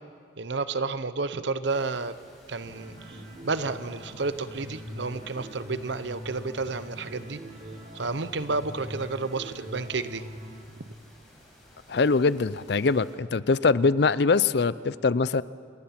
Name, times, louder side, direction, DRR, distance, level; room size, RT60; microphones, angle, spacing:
voice 1, 0.4-2.1 2.5-7.4 7.9-10.2, right 3 dB, 70° right, 13 dB, 0.9 m, -31 dB
sound 1, 1.6-13.1, equal, ahead, 6.3 m, -55 dB
sound 2, 2.6-10.6, equal, 45° right, 4.5 m, -43 dB
voice 2, 11.9-15.4, left 4 dB, 60° left, 17 dB, 0.5 m, -23 dB
28.0 x 19.5 x 5.9 m, 2.1 s
head